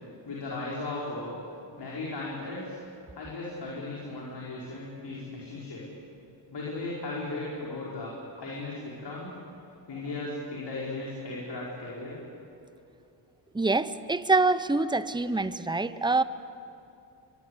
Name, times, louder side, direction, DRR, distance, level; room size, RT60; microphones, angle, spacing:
voice 1, 0.0-1.4 1.8-2.8 3.1-5.9 6.5-9.3 9.9-12.2, left 2 dB, 60° left, -5 dB, 5.6 m, -36 dB
voice 2, 13.5-16.2, right 3 dB, 10° right, 13 dB, 0.9 m, -25 dB
24.0 x 23.0 x 8.2 m, 2.7 s
cardioid pair, 75°, 45 cm